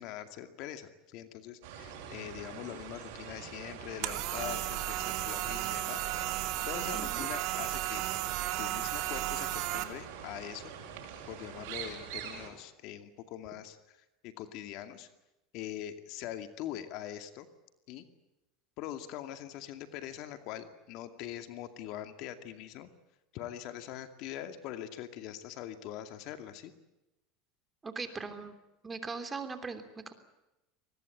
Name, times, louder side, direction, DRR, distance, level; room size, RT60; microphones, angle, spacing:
voice 1, 0.0-6.1 6.6-8.1 8.6-10.7 11.3-14.0 14.2-15.1 15.5-17.5 17.9-18.0 18.8-22.9 23.3-26.7, left 11 dB, 60° left, 9 dB, 2.3 m, -43 dB
sound 1, 1.6-12.5, right 7 dB, 75° right, 7.1 m, -45 dB
sound 2, 4.0-9.8, right 15 dB, 60° right, 2.5 m, -34 dB
voice 2, 6.9-7.2 27.8-28.5 28.8-30.1, right 4 dB, 20° right, 8 dB, 3.2 m, -40 dB
23.5 x 20.5 x 9.2 m, 0.95 s
supercardioid pair, 120°, 0 cm